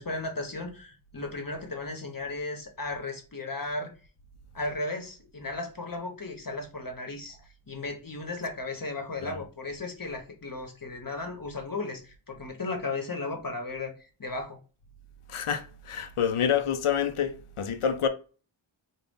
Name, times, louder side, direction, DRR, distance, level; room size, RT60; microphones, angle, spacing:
voice 1, 0.0-3.9 4.5-14.6, left 2 dB, 45° left, 1.0 m, -35 dB
voice 2, 15.3-18.1, left 8 dB, 85° left, 0.6 m, -28 dB
3.9 x 2.3 x 3.5 m
wide cardioid pair, 40°, 49 cm